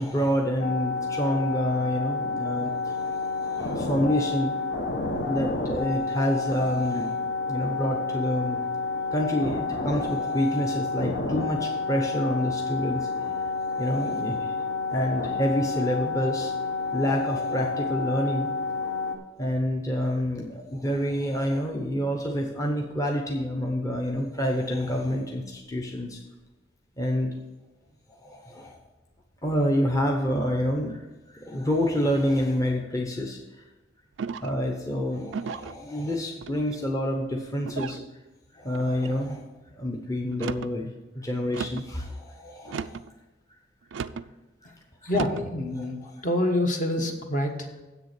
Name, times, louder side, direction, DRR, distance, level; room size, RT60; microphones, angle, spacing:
voice 1, 0.0-4.5 5.1-8.6 9.1-13.5 13.8-14.5 14.9-16.5 16.9-18.5 19.4-26.2 27.0-27.4 28.2-28.8 29.4-31.0 31.3-33.4 34.4-38.0 38.5-39.4 39.8-40.9 41.1-43.0 45.0-45.1 45.8-46.2, equal, 15° left, 1 dB, 0.8 m, -28 dB
sound 1, 0.6-19.2, left 4 dB, 70° left, 1.1 m, -29 dB
sound 2, 34.2-34.7 35.3-35.8 36.4-36.9 37.7-38.1 38.7-39.1 40.3-40.8 41.5-41.9 42.7-43.1 43.9-44.3 45.1-45.5, right 5 dB, 80° right, 0.4 m, -35 dB
voice 2, 45.0-47.8, left 1 dB, 45° left, 4 dB, 1.2 m, -27 dB
7.9 x 6.8 x 6.6 m, 1.1 s
head